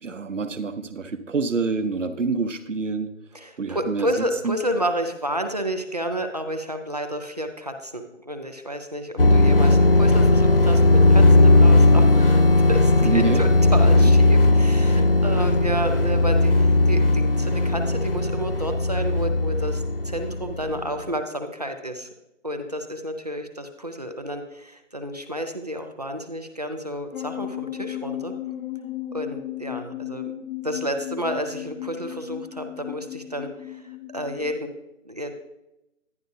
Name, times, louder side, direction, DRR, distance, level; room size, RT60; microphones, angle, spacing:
voice 1, 0.0-3.1 3.6-4.6 13.0-13.5 14.0-14.1, right 4 dB, 65° right, 10 dB, 0.9 m, -27 dB
voice 2, 3.3-22.1 22.4-28.3 29.1-30.3 30.6-34.7 35.0-35.3, right 1 dB, 30° right, 5 dB, 0.6 m, -31 dB
sound 1, 9.2-20.9, left 2 dB, 45° left, 0.4 m, -17 dB
sound 2, 27.1-34.6, left 13 dB, 90° left, 0.6 m, -35 dB
10.5 x 10.5 x 2.6 m, 0.94 s
figure-of-eight pair, 170°, 40 cm